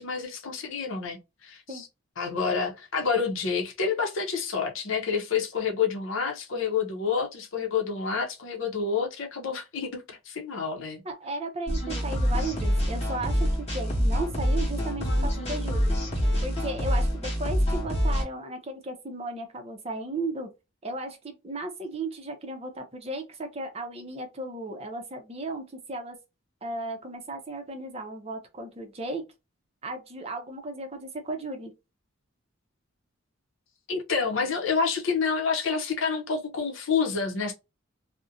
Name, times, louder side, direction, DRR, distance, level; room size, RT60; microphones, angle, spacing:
voice 1, 0.0-1.9 2.2-11.0 33.9-37.5, left 5 dB, 70° left, 0.6 m, -28 dB
voice 2, 11.0-15.9 16.4-20.5 20.8-26.2 26.6-29.2 29.8-31.7, right 2 dB, 30° right, 0.5 m, -35 dB
sound 1, 11.7-18.2, equal, 30° left, 0.9 m, -26 dB
2.5 x 2.1 x 2.6 m
head